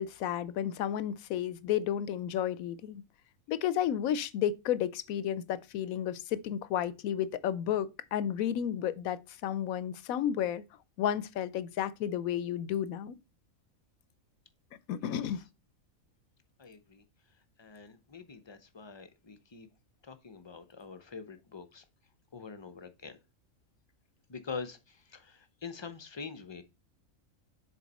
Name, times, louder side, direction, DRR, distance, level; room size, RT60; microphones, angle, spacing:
voice 1, 0.0-3.0 3.5-10.6 11.0-13.2 14.9-15.4, left 10 dB, 85° left, 1.1 m, -32 dB
voice 2, 16.6-17.0 17.6-19.7 20.0-21.8 22.3-23.2 24.3-26.6, left 5 dB, 35° left, 0.4 m, -45 dB
7.1 x 4.1 x 4.0 m
omnidirectional pair, 1.4 m